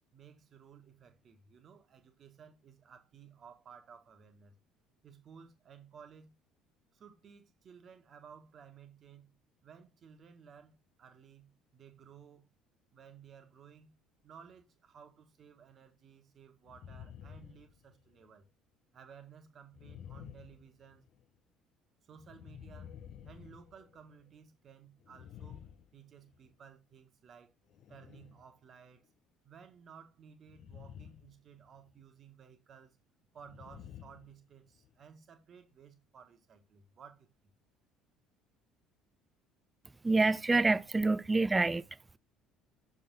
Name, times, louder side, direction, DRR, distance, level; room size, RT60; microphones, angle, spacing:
voice 1, 0.1-4.5 5.0-6.3 6.9-9.3 9.6-12.5 12.9-18.4 18.9-21.0 22.0-23.0 23.2-25.7 25.9-27.5 27.9-29.1 29.4-33.0 33.3-37.5, right 7 dB, 40° right, 1.6 m, -56 dB
sound 1, 16.7-18.3 19.7-21.2 22.1-24.3 25.0-26.6 27.7-28.5 30.5-31.4 31.7-32.0 33.4-34.9, left 9 dB, 50° left, 0.8 m, -51 dB
voice 2, 40.0-41.9, right 3 dB, 15° right, 0.5 m, -27 dB
6.7 x 5.4 x 4.0 m
figure-of-eight pair, 55°, 0 cm